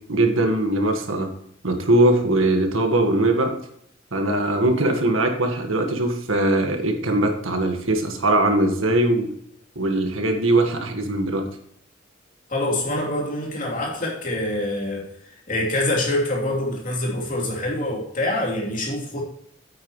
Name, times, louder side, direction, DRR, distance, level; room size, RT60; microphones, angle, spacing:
voice 1, 0.1-1.3 1.6-3.5 4.1-9.3 9.8-11.5, right 1 dB, 90° right, 5 dB, 1.7 m, -21 dB
voice 2, 12.5-19.2, left 1 dB, 40° left, -2 dB, 3.0 m, -25 dB
9.3 x 8.8 x 3.1 m, 0.70 s
head